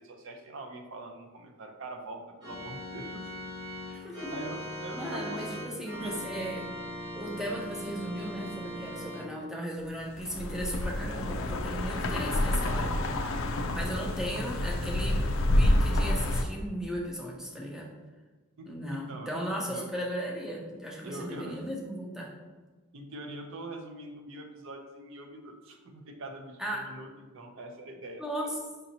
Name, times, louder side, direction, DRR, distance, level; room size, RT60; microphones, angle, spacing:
voice 1, 0.0-3.3 3.9-5.5 5.9-6.2 13.8-14.0 18.6-19.4 19.7-19.9 21.0-21.6 22.9-27.1 27.3-28.2, right 2 dB, 60° right, 4 dB, 0.5 m, -43 dB
Organ, 2.4-9.2, left 1 dB, 20° right, 1.0 m, -40 dB
voice 2, 3.9-4.4 4.9-6.6 7.1-12.9 13.7-15.2 15.5-17.9 18.7-22.3 26.6-26.8 28.2-28.6, equal, 5° right, -2 dB, 0.5 m, -36 dB
sound 1, 10.1-16.4, left 1 dB, 60° left, 0.4 m, -28 dB
5.1 x 2.7 x 2.7 m, 1.3 s
head